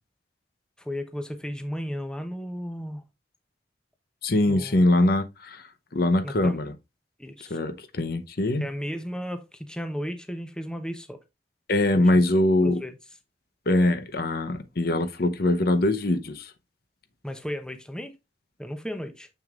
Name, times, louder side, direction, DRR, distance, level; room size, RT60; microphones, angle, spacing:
voice 1, 0.8-3.0 4.5-4.9 6.2-6.6 7.2-7.6 8.6-11.2 11.9-12.2 12.6-13.0 17.2-18.2 18.6-19.3, equal, 5° left, 0.7 m, -34 dB
voice 2, 4.2-6.7 7.5-8.6 11.7-12.8 13.7-16.5, left 1 dB, 60° left, 0.8 m, -23 dB
6.8 x 6.4 x 2.4 m
head